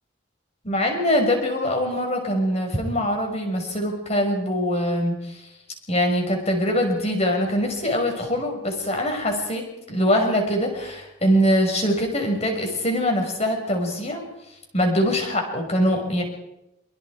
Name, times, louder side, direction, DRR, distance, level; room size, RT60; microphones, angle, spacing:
voice 1, 0.6-5.4 5.9-14.2 14.7-16.2, equal, 35° left, 3 dB, 5.8 m, -23 dB
25.5 x 24.5 x 4.8 m, 0.87 s
head